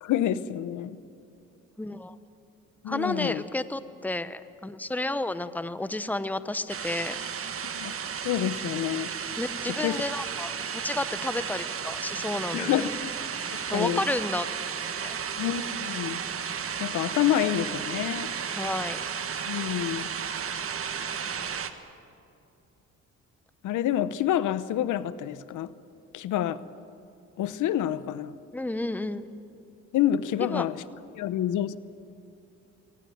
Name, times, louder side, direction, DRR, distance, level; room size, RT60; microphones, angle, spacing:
voice 1, 0.0-1.0 2.8-3.4 7.7-7.9 8.2-9.1 9.7-10.0 12.5-13.0 13.5-14.0 15.4-16.2 16.8-18.3 19.5-20.1 23.6-25.7 26.1-26.6 27.4-28.3 29.9-30.8 31.1-31.8, left 11 dB, 80° left, 16 dB, 0.9 m, -28 dB
voice 2, 1.8-2.1 2.9-7.2 9.4-12.9 13.7-14.5 15.0-15.2 18.5-19.0 28.5-29.2 30.5-30.6, left 2 dB, 5° left, 13 dB, 0.9 m, -31 dB
sound 1, 6.7-21.7, right 7 dB, 45° right, 1.6 m, -33 dB
22.5 x 18.5 x 9.3 m, 2.7 s
cardioid pair, 90°, 30 cm